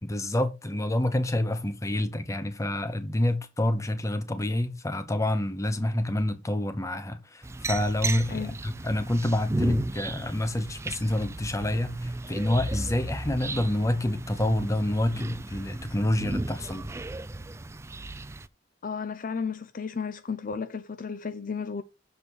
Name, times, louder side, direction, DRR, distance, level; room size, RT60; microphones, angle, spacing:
voice 1, 0.0-16.9, left 1 dB, 15° left, 0.9 m, -28 dB
sound 1, 7.4-18.5, right 2 dB, 15° right, 0.4 m, -34 dB
voice 2, 18.8-21.8, left 5 dB, 45° left, 0.5 m, -33 dB
6.9 x 4.2 x 6.2 m
head